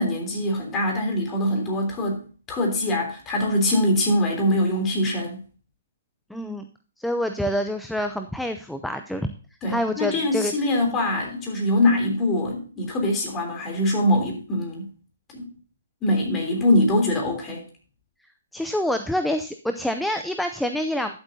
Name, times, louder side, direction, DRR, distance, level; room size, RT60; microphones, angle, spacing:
voice 1, 0.0-5.4 9.6-14.9 15.3-15.5 16.0-17.6, left 1 dB, 20° left, 1 dB, 3.3 m, -23 dB
voice 2, 6.3-6.7 7.0-9.3 9.7-10.5 10.8-11.0 18.5-21.2, left 1 dB, ahead, 7 dB, 0.5 m, -27 dB
12.5 x 7.9 x 2.7 m, 0.39 s
hypercardioid pair, 140°, 0 cm